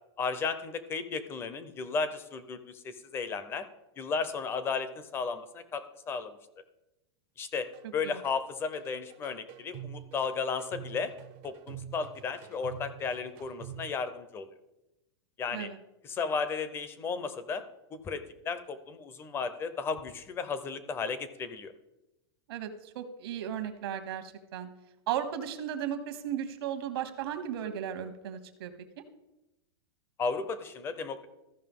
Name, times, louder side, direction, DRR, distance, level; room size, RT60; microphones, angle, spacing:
voice 1, 0.2-3.7 4.0-6.4 7.4-11.1 11.4-14.5 15.4-15.7 16.0-17.6 17.9-21.7 30.2-31.3, left 5 dB, 15° left, 12 dB, 0.5 m, -34 dB
sound 1, 7.7-7.9 8.2-14.0, right 11 dB, 35° right, 0.6 m, -46 dB
voice 2, 22.5-24.7 25.1-29.0, right 9 dB, 65° right, 9 dB, 1.1 m, -36 dB
14.5 x 5.4 x 3.6 m, 0.95 s
supercardioid pair, 160°, 14 cm